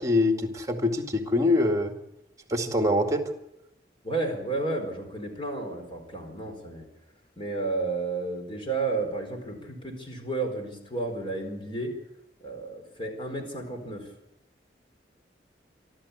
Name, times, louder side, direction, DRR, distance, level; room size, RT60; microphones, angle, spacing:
voice 1, 0.0-1.9 2.5-3.3, left 2 dB, 20° right, 4 dB, 2.2 m, -24 dB
voice 2, 4.0-6.9 7.4-12.0 12.4-14.1, right 3 dB, 30° left, 3 dB, 4.6 m, -32 dB
26.5 x 12.5 x 8.6 m, 0.87 s
head